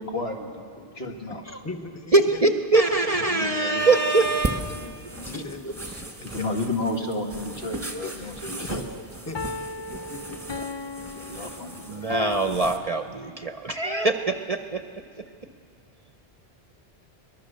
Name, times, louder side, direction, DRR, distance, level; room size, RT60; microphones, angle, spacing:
voice 1, 0.0-0.7 0.9-1.6 3.3-3.9 6.2-8.9 11.1-12.1, left 2 dB, 70° left, 1 dB, 2.2 m, -32 dB
voice 2, 1.3-2.4 4.7-6.5 7.0-7.1 7.9-9.4 9.9-10.4, left 2 dB, 15° left, 6 dB, 1.1 m, -40 dB
voice 3, 2.1-4.7 5.6-5.7 11.9-14.8 15.2-15.3, right 3 dB, 40° right, 7 dB, 0.7 m, -23 dB
sound 1, 3.8-12.8, right 2 dB, 15° right, 1.3 m, -37 dB
sound 2, 3.9-4.9 9.3-12.5, left 4 dB, 35° left, 0.4 m, -36 dB
23.5 x 20.5 x 6.6 m, 2.4 s
omnidirectional pair, 1.1 m